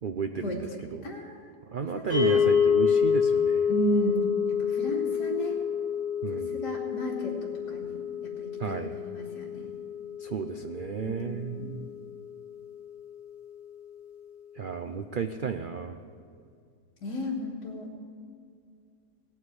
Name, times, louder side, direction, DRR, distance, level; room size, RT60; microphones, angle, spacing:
voice 1, 0.0-1.1 1.7-3.7 6.2-6.6 8.6-8.9 10.2-11.8 14.5-16.0, right 6 dB, 85° right, 8 dB, 0.4 m, -33 dB
voice 2, 1.0-1.4 1.9-2.4 3.7-5.6 6.3-8.0 8.4-9.7 11.0-11.7 17.0-17.9, right 1 dB, 70° left, -5 dB, 2.4 m, -34 dB
sound 1, 2.1-12.4, left 7 dB, 55° right, 5.8 m, -28 dB
17.0 x 9.1 x 8.6 m, 2.2 s
omnidirectional pair, 1.7 m